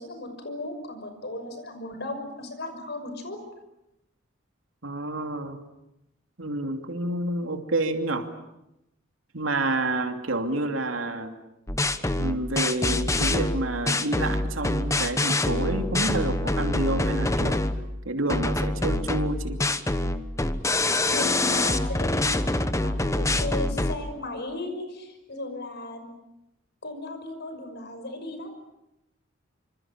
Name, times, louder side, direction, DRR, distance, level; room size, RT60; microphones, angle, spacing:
voice 1, 0.0-3.4 21.1-26.1 26.8-28.5, left 2 dB, 60° left, 7 dB, 6.0 m, -36 dB
voice 2, 4.8-5.6 6.4-8.3 9.3-11.3 12.2-17.6 18.0-19.6, right 2 dB, 80° right, 5 dB, 2.8 m, -29 dB
sound 1, 11.7-17.8 18.3-24.0, left 2 dB, 15° left, 1.2 m, -25 dB
27.0 x 26.0 x 7.4 m, 0.89 s
head